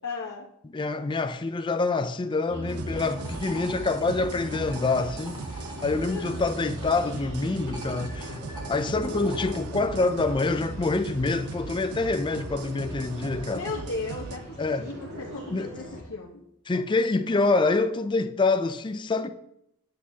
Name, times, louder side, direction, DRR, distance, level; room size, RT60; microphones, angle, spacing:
voice 1, 0.0-0.5 6.0-6.4 13.5-16.4, left 3 dB, 70° left, 1.0 m, -36 dB
voice 2, 0.7-5.4 5.8-8.4 8.7-13.7 14.6-14.8 15.5-15.7 16.7-19.3, left 3 dB, 20° left, 0.4 m, -26 dB
sound 1, 2.5-16.0, equal, 55° right, 2.0 m, -40 dB
sound 2, 2.7-7.3 7.6-9.6, right 1 dB, 20° right, 1.8 m, -45 dB
sound 3, 2.7-14.4, right 4 dB, 85° right, 0.7 m, -39 dB
9.2 x 8.4 x 2.8 m
head